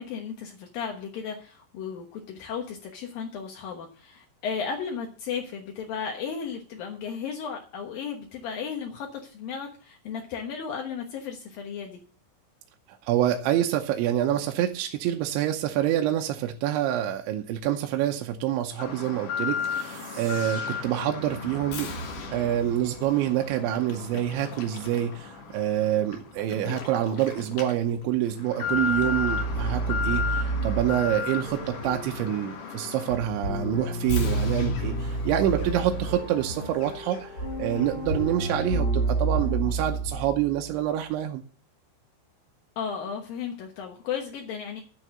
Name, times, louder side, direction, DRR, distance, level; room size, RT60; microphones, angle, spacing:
voice 1, 0.0-12.0 42.8-44.8, left 6 dB, 80° left, 2 dB, 2.0 m, -35 dB
voice 2, 12.9-21.9 22.3-41.4, right 11 dB, 80° right, 4 dB, 2.8 m, -27 dB
Alarm, 18.8-37.5 37.8-37.9 38.5-38.6, left 6 dB, 60° left, 2.4 m, -35 dB
sound 1, 19.6-24.2, right 6 dB, 50° right, 2.3 m, -45 dB
sound 2, 28.7-40.8, right 2 dB, 25° left, 2.5 m, -30 dB
11.0 x 6.4 x 7.6 m, 0.41 s
omnidirectional pair, 6.0 m